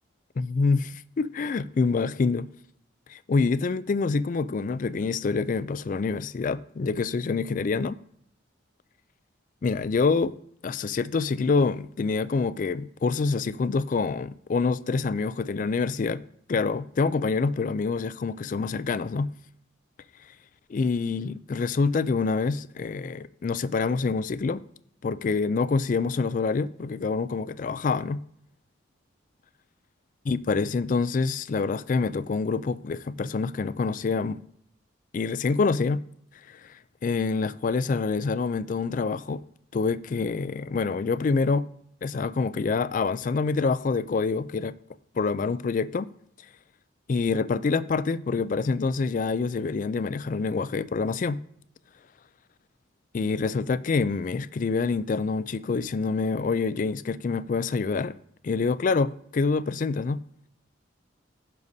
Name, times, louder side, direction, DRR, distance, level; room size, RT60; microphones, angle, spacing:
voice 1, 0.4-2.5 3.1-8.0 9.6-10.3 10.6-16.2 16.5-19.3 20.7-24.6 25.0-28.2 30.3-34.4 35.1-36.0 36.5-36.7 37.0-39.4 39.7-41.7 42.0-44.8 45.2-46.1 47.1-51.4 53.1-58.1 58.4-60.2, left 4 dB, 40° left, 0.3 m, -26 dB
15.5 x 6.6 x 2.7 m
head